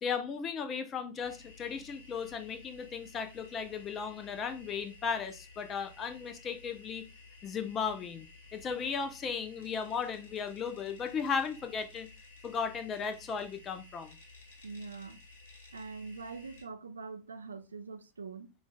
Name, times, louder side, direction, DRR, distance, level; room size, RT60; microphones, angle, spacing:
voice 1, 0.0-7.1 7.4-12.1 12.4-14.2, left 6 dB, 25° left, 0.5 m, -36 dB
sound 1, 1.2-16.6, left 3 dB, 60° left, 1.3 m, -54 dB
voice 2, 14.6-15.2 15.7-18.5, right 4 dB, 75° right, 0.4 m, -43 dB
5.0 x 2.4 x 2.2 m
figure-of-eight pair, 90°, 0 cm